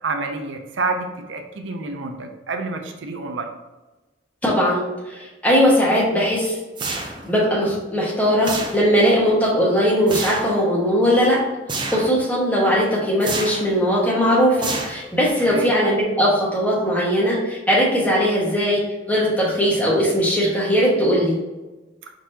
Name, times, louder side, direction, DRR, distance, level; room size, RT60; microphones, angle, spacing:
voice 1, 0.0-3.5 15.4-15.7 22.0-22.1, right 3 dB, 90° right, 5 dB, 0.6 m, -28 dB
voice 2, 4.4-6.6 6.8-11.4 11.9-21.4, equal, 10° left, -5 dB, 1.2 m, -19 dB
sound 1, 6.8-7.4 8.4-9.1 10.1-10.6 11.7-12.2 13.2-13.7 14.6-15.3, right 3 dB, 25° right, 0.4 m, -29 dB
4.7 x 3.9 x 2.8 m, 1.1 s
head